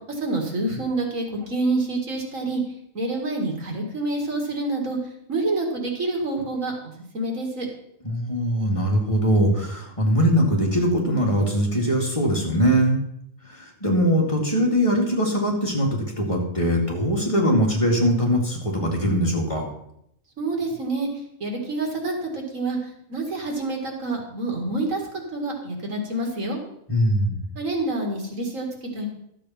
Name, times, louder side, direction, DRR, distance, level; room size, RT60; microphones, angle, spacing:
voice 1, 0.1-2.6 2.9-5.0 5.3-6.7 7.1-7.7 20.4-21.1 21.4-22.8 23.1-25.0 25.3-26.6 27.6-28.7 28.9-29.1, right 2 dB, 90° right, 1 dB, 2.7 m, -27 dB
voice 2, 8.0-13.0 13.8-19.6 26.9-27.4, equal, 25° left, -1 dB, 2.3 m, -21 dB
12.5 x 7.6 x 5.7 m, 0.75 s
omnidirectional pair, 1.3 m